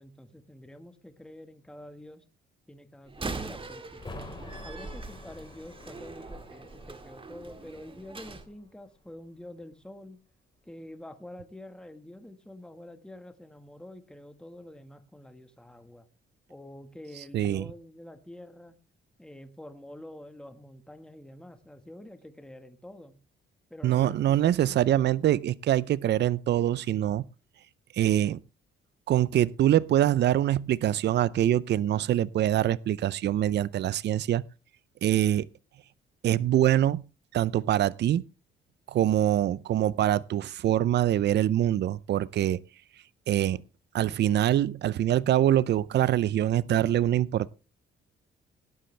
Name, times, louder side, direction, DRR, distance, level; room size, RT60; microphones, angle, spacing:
voice 1, 0.0-2.2 2.7-4.0 4.6-10.2 10.6-16.1 16.5-18.8 19.2-23.1 23.7-24.8, left 1 dB, 5° left, 1.5 m, -47 dB
Slam, 3.1-8.5, right 3 dB, 25° right, 1.8 m, -41 dB
sound 1, 3.9-9.5 9.8-9.9, left 2 dB, 20° left, 4.3 m, -48 dB
voice 2, 17.3-17.6 23.8-27.2 27.9-28.4 29.1-34.4 35.0-35.5 36.2-37.0 37.3-38.2 38.9-42.6 43.3-43.6 43.9-47.5, right 12 dB, 60° right, 0.5 m, -24 dB
18.0 x 10.5 x 3.3 m
cardioid pair, 90°, 20 cm